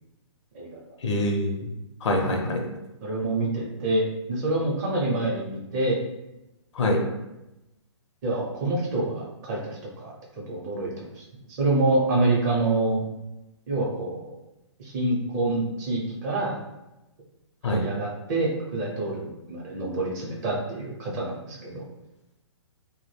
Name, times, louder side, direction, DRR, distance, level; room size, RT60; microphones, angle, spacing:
voice 1, 1.0-1.7 2.0-2.6 6.7-7.0 17.6-17.9, left 1 dB, 70° left, 2 dB, 0.6 m, -24 dB
voice 2, 3.0-6.0 8.2-10.1 10.5-11.2 11.5-13.0 13.7-14.3 14.8-16.6 17.6-21.8, right 2 dB, 35° right, -3 dB, 0.7 m, -27 dB
2.2 x 2.1 x 3.2 m, 0.96 s
hypercardioid pair, 145°, 16 cm